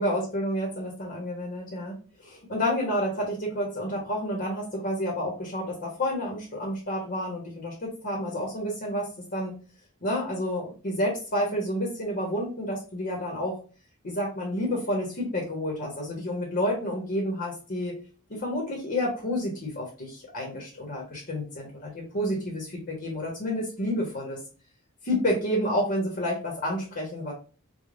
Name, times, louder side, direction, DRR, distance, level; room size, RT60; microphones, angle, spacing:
voice 1, 0.0-9.5 10.0-13.6 14.0-17.9 18.3-24.4 25.0-27.3, left 1 dB, 45° left, -2 dB, 1.1 m, -30 dB
4.9 x 2.3 x 2.4 m, 0.37 s
head